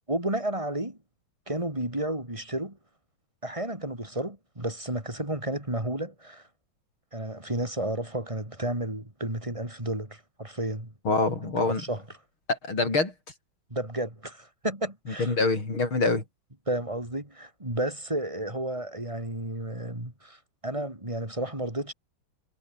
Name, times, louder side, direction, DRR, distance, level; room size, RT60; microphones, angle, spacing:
voice 1, 0.1-1.0 1.5-2.8 3.4-6.5 7.1-10.9 11.6-12.0 13.7-15.3 16.7-21.9, right 1 dB, 15° right, 5.5 m, -32 dB
voice 2, 11.1-11.8 12.5-13.1 15.2-16.2, left 3 dB, 90° left, 6.9 m, -25 dB
omnidirectional pair, 2.2 m